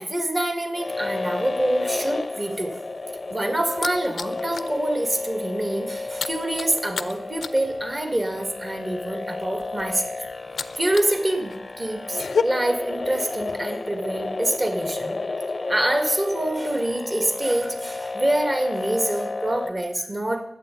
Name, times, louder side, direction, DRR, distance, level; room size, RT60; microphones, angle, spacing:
voice 1, 0.0-2.8 3.3-10.0 10.8-15.2 15.7-20.4, right 1 dB, 25° right, 4 dB, 1.7 m, -26 dB
sound 1, 0.7-19.7, left 3 dB, 35° left, 0.6 m, -32 dB
sound 2, 3.0-4.8 5.1-5.3 5.6-11.2 11.5-12.4, left 6 dB, 90° left, 0.5 m, -31 dB
20.0 x 8.3 x 3.8 m, 0.76 s
wide cardioid pair, 135°, 0 cm